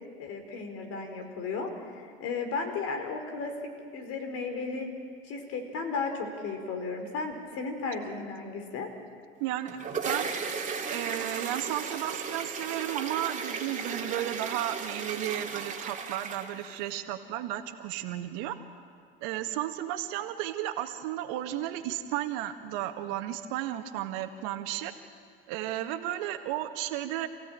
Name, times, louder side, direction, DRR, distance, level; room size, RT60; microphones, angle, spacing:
voice 1, 0.2-3.5 3.9-4.9 5.3-8.9, left 4 dB, 50° left, 5 dB, 4.9 m, -34 dB
voice 2, 9.4-10.3 10.9-18.6 19.2-24.9 25.5-27.3, right 13 dB, 60° right, 7 dB, 1.9 m, -33 dB
sound 1, 9.5-17.0, right 5 dB, 25° right, 3.0 m, -35 dB
28.0 x 16.5 x 9.2 m, 2.1 s
hypercardioid pair, 85°, 30 cm